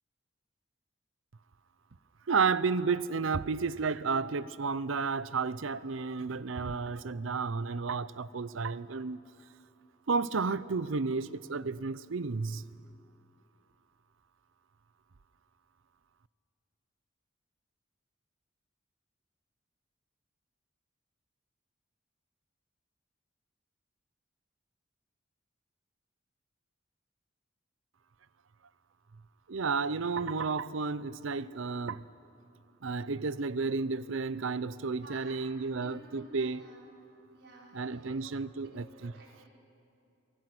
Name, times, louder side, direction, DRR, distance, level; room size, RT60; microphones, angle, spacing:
voice 1, 2.3-9.2 10.1-12.6 29.5-32.0 32.8-36.6 37.7-39.1, right 4 dB, 85° right, 0.7 m, -32 dB
voice 2, 35.0-36.8 37.3-39.5, right 2 dB, 60° right, 5.3 m, -54 dB
27.5 x 23.5 x 6.1 m
head